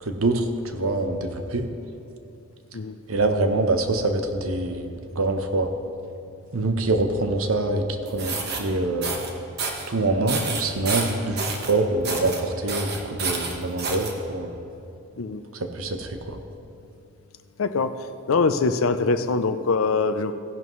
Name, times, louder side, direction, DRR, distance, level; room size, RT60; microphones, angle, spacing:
voice 1, 0.0-1.7 3.1-5.7 6.5-9.2 9.9-14.6 15.7-16.4, right 2 dB, 75° right, 6 dB, 0.9 m, -25 dB
sound 1, 8.1-8.6 9.0-9.3 9.6-9.9 10.3-11.7 12.0-12.4 12.7-14.1, right 4 dB, 50° right, 1.2 m, -29 dB
voice 2, 17.6-17.9 18.3-20.3, left 4 dB, 75° left, 10 dB, 0.5 m, -23 dB
16.0 x 11.0 x 3.2 m, 2.7 s
head